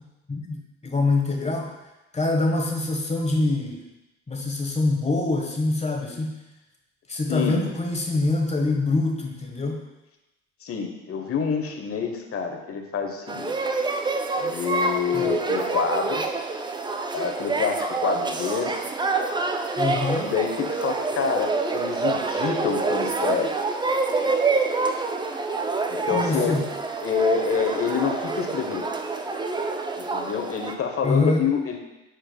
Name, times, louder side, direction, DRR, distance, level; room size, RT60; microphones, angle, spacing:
voice 1, 0.3-1.7 2.1-3.8 4.3-6.4 7.1-9.8 15.1-15.4 19.8-20.3 26.1-26.7 31.0-31.4, left 2 dB, 15° left, 1 dB, 1.3 m, -25 dB
voice 2, 7.3-7.7 10.6-13.6 14.4-16.3 17.1-18.7 20.2-23.6 25.9-26.5 27.0-28.9 30.0-31.8, left 6 dB, 35° left, 4 dB, 1.2 m, -27 dB
sound 1, 13.3-30.7, right 3 dB, 10° right, 0.5 m, -27 dB
10.0 x 4.5 x 2.3 m, 0.98 s
hypercardioid pair, 65°, 40 cm